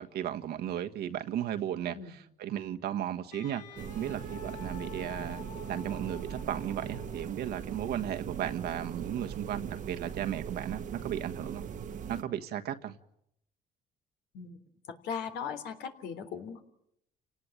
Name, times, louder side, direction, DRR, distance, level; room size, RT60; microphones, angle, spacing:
voice 1, 0.0-11.6 12.1-13.0, right 10 dB, 70° right, 1.5 m, -35 dB
Wind instrument woodwind instrument, 3.3-7.4, left 7 dB, 50° left, 5.6 m, -49 dB
sound 1, 3.8-12.2, right 7 dB, 50° right, 1.4 m, -40 dB
voice 2, 15.0-16.6, left 7 dB, 80° left, 3.5 m, -38 dB
29.5 x 18.5 x 8.9 m
cardioid pair, 110°, 17 cm